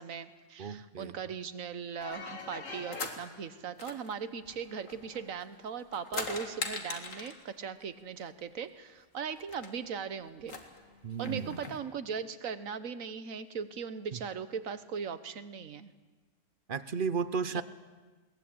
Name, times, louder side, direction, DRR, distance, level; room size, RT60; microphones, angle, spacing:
voice 1, 0.0-10.6 11.2-15.9 17.5-17.6, right 6 dB, 80° right, 12 dB, 1.5 m, -39 dB
voice 2, 0.6-1.2 11.0-11.6 14.1-14.2 16.7-17.6, right 5 dB, 45° right, 14 dB, 0.9 m, -34 dB
sound 1, 2.0-3.2 3.8-5.4 5.8-7.4 8.6-8.7 8.9-9.0 9.4-9.7 10.4-11.8, left 3 dB, 70° left, 2.5 m, -41 dB
21.5 x 18.5 x 8.7 m, 1.3 s
omnidirectional pair, 1.4 m